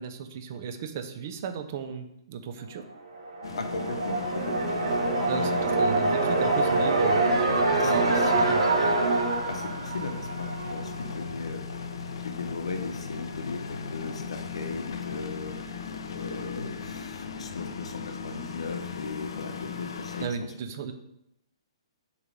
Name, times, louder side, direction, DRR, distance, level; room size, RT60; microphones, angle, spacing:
voice 1, 0.0-2.8 5.3-7.2 7.8-8.6 20.2-20.9, right 7 dB, 25° right, 9 dB, 0.4 m, -35 dB
sound 1, 3.1-10.9, right 2 dB, 70° right, 1.4 m, -25 dB
sound 2, 3.4-20.3, left 5 dB, 50° left, 0.6 m, -38 dB
voice 2, 3.6-5.7 7.6-8.2 9.5-11.6 12.2-15.6 16.1-20.3, left 4 dB, 85° left, 6 dB, 1.0 m, -37 dB
6.7 x 3.1 x 5.2 m, 0.80 s
hypercardioid pair, 180°, 3 cm